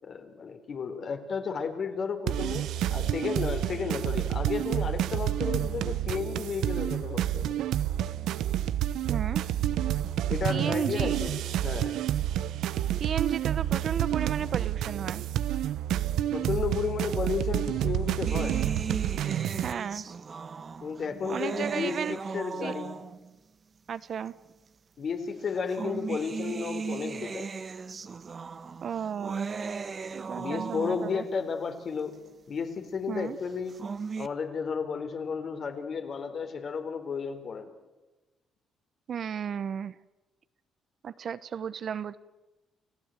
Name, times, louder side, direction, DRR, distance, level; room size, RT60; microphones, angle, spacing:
voice 1, 0.0-7.6 10.3-11.4 11.6-11.9 16.3-18.6 20.8-23.0 25.0-27.5 30.4-32.2 32.5-33.8 34.2-37.7, left 5 dB, 55° left, 7 dB, 3.7 m, -33 dB
sound 1, 2.3-19.7, right 12 dB, 85° right, 0.8 m, -29 dB
voice 2, 9.1-9.4 10.5-11.2 13.0-15.2 19.6-20.0 21.3-22.2 22.6-22.7 23.9-24.3 28.8-29.5 30.1-31.2 33.1-33.4 39.1-40.0 41.0-42.2, right 8 dB, 55° right, 16 dB, 1.0 m, -34 dB
sound 2, 18.3-23.4 24.3-24.4 25.5-31.4 33.5-34.3, right 5 dB, 40° right, 1.2 m, -37 dB
30.0 x 16.0 x 9.1 m, 1.1 s
cardioid pair, 90°, 0 cm